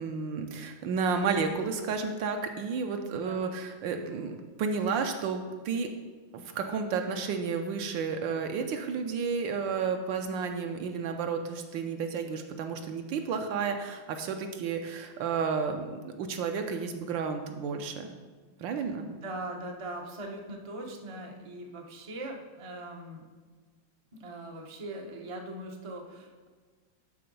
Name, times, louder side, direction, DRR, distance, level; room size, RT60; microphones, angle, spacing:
voice 1, 0.0-5.9 6.3-18.1 18.6-19.1, right 5 dB, 70° right, 6 dB, 1.3 m, -32 dB
voice 2, 3.0-3.5 19.2-23.3 24.1-26.5, right 1 dB, 50° right, 1 dB, 0.4 m, -41 dB
11.0 x 3.8 x 5.3 m, 1.4 s
omnidirectional pair, 2.3 m